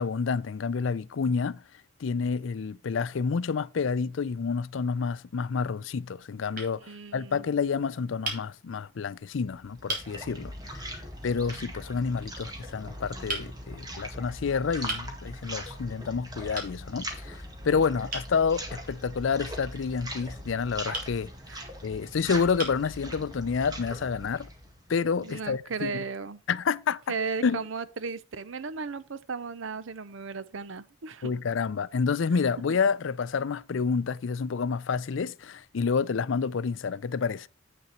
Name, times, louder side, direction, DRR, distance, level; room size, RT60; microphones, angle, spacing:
voice 1, 0.0-1.6 2.0-6.8 7.1-10.5 11.2-17.4 17.6-21.3 21.8-24.5 24.9-26.0 26.5-27.0 27.4-27.6 31.2-37.5, left 5 dB, 75° left, 0.5 m, -29 dB
sound 1, 4.8-5.4 6.1-6.3 6.6-6.7 8.2-8.5 9.3-9.4 9.9-10.1 11.5-11.7 13.3-13.5 14.9-15.1 16.5-16.8 18.1-18.3 20.9-21.1 22.0-22.1 22.6-22.9, right 2 dB, 45° right, 3.5 m, -35 dB
voice 2, 6.7-7.4 21.5-21.6 25.2-26.4 27.1-31.3, right 4 dB, 80° right, 0.7 m, -35 dB
sound 2, 9.5-25.5, equal, 20° right, 1.9 m, -41 dB
8.4 x 6.7 x 4.3 m
head